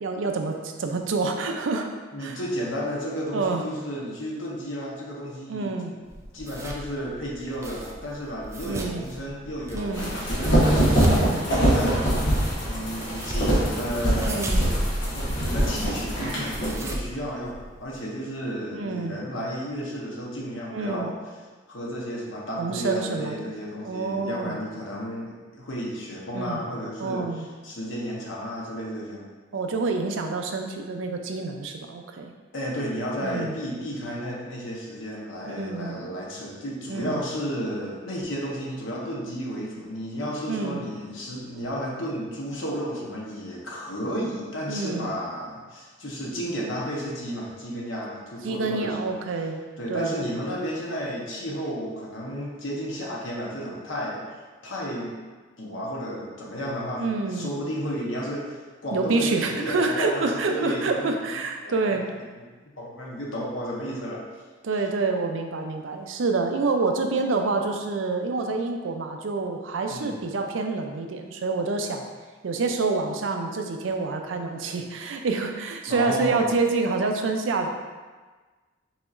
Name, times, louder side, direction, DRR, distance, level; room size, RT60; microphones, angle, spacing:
voice 1, 0.0-1.9 2.2-2.4 3.3-3.6 5.5-6.0 8.6-9.0 9.7-10.1 11.1-11.4 14.2-14.7 18.7-19.2 20.7-21.1 22.6-23.5 23.8-24.6 26.3-26.6 27.0-27.5 29.5-32.3 33.2-33.6 35.5-36.0 36.9-37.2 40.5-40.9 44.7-45.1 48.4-49.6 49.9-50.1 57.0-57.5 58.9-62.1 64.6-72.1 72.4-77.7, right 3 dB, 80° right, 4 dB, 0.5 m, -27 dB
voice 2, 2.1-5.9 6.3-11.2 11.4-11.9 12.6-14.7 15.1-21.1 21.7-27.3 27.6-29.2 32.5-49.2 49.8-54.2 54.6-55.1 55.6-61.1 61.6-61.9 62.8-64.2 69.9-70.2 75.9-76.5, equal, 90° left, -4 dB, 1.0 m, -32 dB
sound 1, 6.1-18.0, right 1 dB, 15° right, 0.4 m, -35 dB
sound 2, 9.9-16.7, right 1 dB, 65° left, 1.1 m, -23 dB
5.9 x 2.8 x 2.5 m, 1.4 s
head